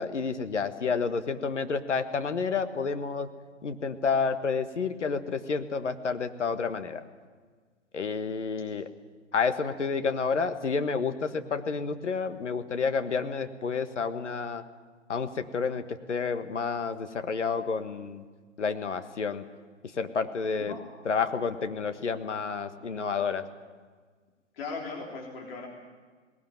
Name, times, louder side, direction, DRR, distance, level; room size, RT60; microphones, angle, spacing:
voice 1, 0.0-3.3 3.6-7.0 7.9-8.9 9.3-14.6 15.1-18.2 18.6-19.4 20.0-20.7 21.0-23.4, left 5 dB, 70° left, 9 dB, 1.6 m, -30 dB
voice 2, 24.5-25.7, left 4 dB, 50° left, 0 dB, 3.4 m, -38 dB
19.5 x 18.0 x 9.2 m, 1.5 s
figure-of-eight pair, 125°, 37 cm